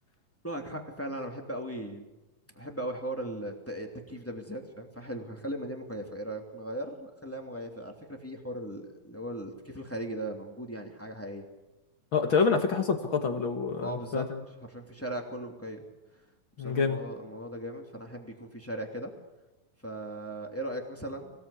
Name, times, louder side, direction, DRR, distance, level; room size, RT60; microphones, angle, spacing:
voice 1, 0.4-2.1 2.5-11.5 12.2-12.6 13.8-14.3 14.7-15.9 16.1-16.3 16.6-19.1 19.8-21.3, right 1 dB, 5° left, 3 dB, 2.1 m, -38 dB
voice 2, 12.1-14.4 16.6-17.0, left 5 dB, 45° left, 5 dB, 1.8 m, -27 dB
25.5 x 17.0 x 8.5 m, 1.0 s
omnidirectional pair, 4.0 m